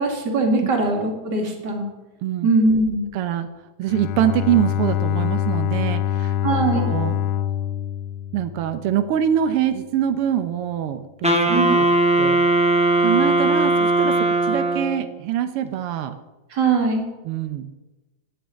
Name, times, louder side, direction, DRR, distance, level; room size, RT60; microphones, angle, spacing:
voice 1, 0.0-1.9 2.4-3.0 6.4-6.9 11.5-11.7 16.5-17.1, right 3 dB, 35° right, 1 dB, 2.6 m, -21 dB
voice 2, 3.1-3.5 3.8-7.2 8.3-11.4 11.7-11.9 12.2-12.4 13.0-16.1 17.2-17.7, right 10 dB, 85° right, 9 dB, 1.2 m, -24 dB
Bowed string instrument, 3.9-9.1, left 10 dB, 85° left, 1.4 m, -25 dB
Wind instrument woodwind instrument, 11.2-15.1, right 2 dB, 5° right, 0.8 m, -19 dB
9.7 x 9.4 x 9.0 m, 1.1 s
omnidirectional pair, 3.5 m